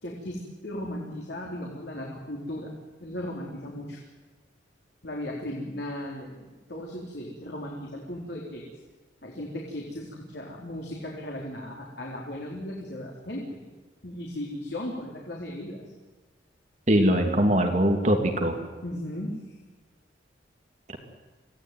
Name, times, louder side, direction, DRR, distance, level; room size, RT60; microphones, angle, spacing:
voice 1, 0.0-2.7 3.0-4.0 5.0-8.6 9.2-13.6 14.0-15.9 18.8-19.6, left 1 dB, 60° left, -2 dB, 4.1 m, -36 dB
voice 2, 16.9-18.6, equal, 40° right, 4 dB, 2.7 m, -22 dB
26.0 x 17.5 x 9.5 m, 1.3 s
head